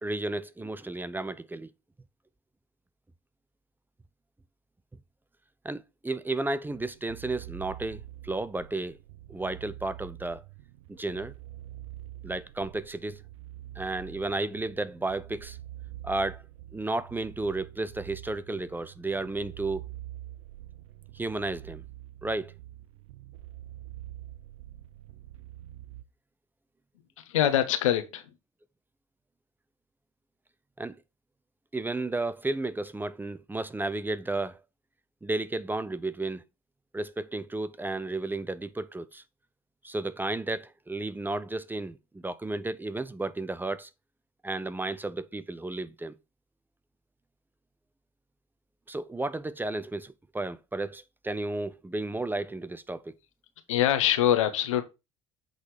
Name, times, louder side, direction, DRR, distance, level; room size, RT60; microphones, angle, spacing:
voice 1, 0.0-1.7 5.6-9.0 9.3-10.4 10.9-11.3 12.2-13.2 13.8-15.6 16.0-16.4 16.7-19.8 21.1-21.8 22.2-22.5 30.8-31.0 31.7-34.6 35.2-36.4 36.9-39.2 39.8-43.9 44.4-46.2 48.9-53.1, right 2 dB, 10° right, 0.7 m, -33 dB
sound 1, 6.7-26.0, right 14 dB, 80° right, 0.6 m, -46 dB
voice 2, 27.2-28.2 53.7-54.8, left 11 dB, 85° left, 1.1 m, -24 dB
8.2 x 4.1 x 4.9 m
hypercardioid pair, 65°, 16 cm